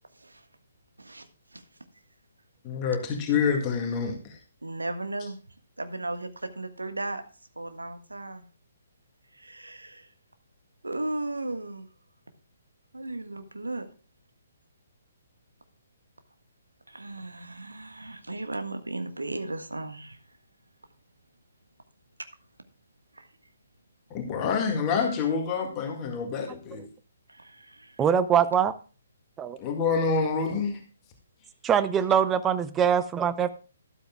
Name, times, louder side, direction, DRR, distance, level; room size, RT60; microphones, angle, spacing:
voice 1, 1.0-1.6 4.6-5.4 5.8-7.2 7.6-8.4 9.3-10.1 10.8-11.9 12.9-13.9 16.9-20.2 23.2-23.3 27.3-28.1, right 2 dB, 75° right, 1.5 m, -36 dB
voice 2, 2.6-4.4 24.1-26.8 29.6-30.8, left 5 dB, 25° left, 2.0 m, -27 dB
voice 3, 28.0-28.7 29.4-29.6 31.6-33.5, right 8 dB, 15° right, 0.7 m, -23 dB
13.0 x 12.0 x 2.3 m
figure-of-eight pair, 130°, 0 cm